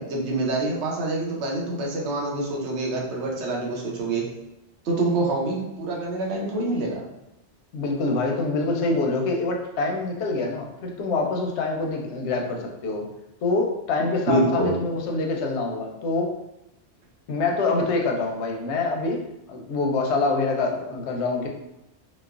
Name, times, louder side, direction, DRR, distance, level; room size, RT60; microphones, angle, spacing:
voice 1, 0.0-4.3 4.8-7.0 14.3-14.7, right 2 dB, 85° right, -1 dB, 0.9 m, -26 dB
voice 2, 7.7-13.1 13.4-16.3 17.3-19.2 19.5-21.5, left 3 dB, 90° left, 1 dB, 0.9 m, -25 dB
3.0 x 2.0 x 2.3 m, 0.87 s
omnidirectional pair, 1.1 m